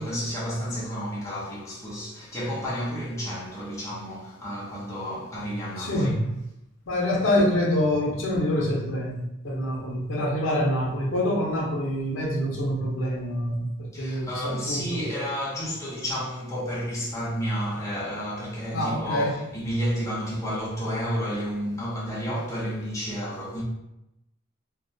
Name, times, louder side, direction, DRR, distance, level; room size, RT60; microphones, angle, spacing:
voice 1, 0.0-6.1 13.9-23.6, equal, 15° left, 0.6 m, -31 dB
voice 2, 5.8-6.3 6.9-15.0 18.7-19.3, left 1 dB, 65° left, 0.6 m, -26 dB
2.2 x 2.1 x 2.6 m
head